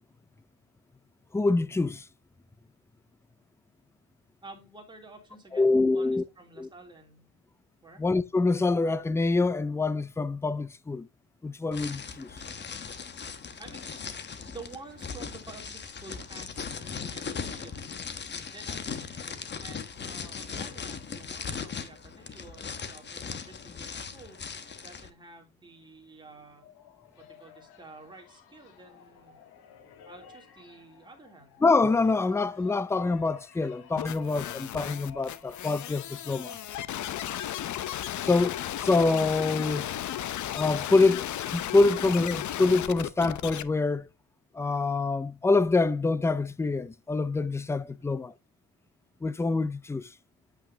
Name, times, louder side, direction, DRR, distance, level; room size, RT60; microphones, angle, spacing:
voice 1, 1.3-2.1 5.5-6.2 6.6-6.7 8.0-11.1 11.4-12.3 31.6-36.6 38.2-39.9 40.5-44.1 44.5-48.3 49.2-50.1, left 3 dB, 10° left, 0.4 m, -25 dB
voice 2, 4.4-7.4 7.8-8.0 13.6-17.9 18.5-24.4 24.8-26.6 27.2-29.4 30.1-31.6 48.0-48.2, right 3 dB, 10° right, 3.1 m, -50 dB
sound 1, 11.7-25.1, left 6 dB, 30° left, 1.1 m, -39 dB
sound 2, 26.3-43.3, left 7 dB, 80° left, 1.9 m, -53 dB
sound 3, 34.0-43.6, left 11 dB, 50° left, 0.7 m, -35 dB
9.0 x 8.0 x 2.8 m
cardioid pair, 135°, 37 cm